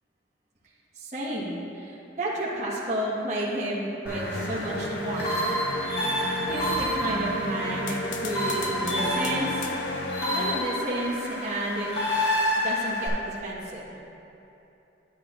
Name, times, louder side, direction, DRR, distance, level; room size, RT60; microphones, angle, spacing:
voice 1, 0.9-5.3 6.5-9.6 10.3-11.9 12.5-13.9, right 1 dB, 40° right, -8 dB, 1.4 m, -31 dB
sound 1, 4.1-13.1, equal, 55° left, 1.9 m, -29 dB
sound 2, 4.3-10.6, left 2 dB, 85° left, 0.5 m, -33 dB
11.5 x 8.7 x 2.5 m, 2.9 s
head